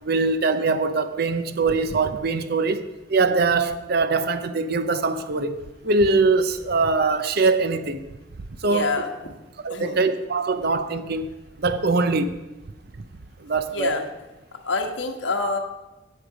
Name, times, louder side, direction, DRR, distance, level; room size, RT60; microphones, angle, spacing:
voice 1, 0.0-8.0 8.6-8.9 9.6-12.4 13.4-13.9, right 3 dB, 55° right, 0.6 m, -22 dB
voice 2, 8.7-9.1 9.7-10.0 13.7-14.1 14.6-15.6, left 3 dB, 60° left, 1.4 m, -26 dB
17.0 x 6.6 x 5.0 m
head